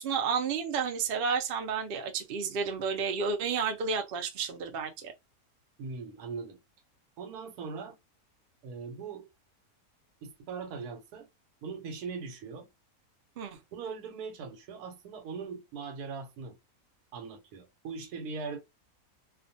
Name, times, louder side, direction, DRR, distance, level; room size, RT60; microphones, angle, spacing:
voice 1, 0.0-5.1 13.4-13.6, right 5 dB, 65° right, 0.5 m, -31 dB
voice 2, 5.8-6.6 7.2-8.0 8.6-9.3 10.2-11.3 11.6-12.7 13.7-16.6 17.1-18.6, right 5 dB, 85° right, 1.2 m, -40 dB
2.4 x 2.2 x 2.6 m
omnidirectional pair, 1.6 m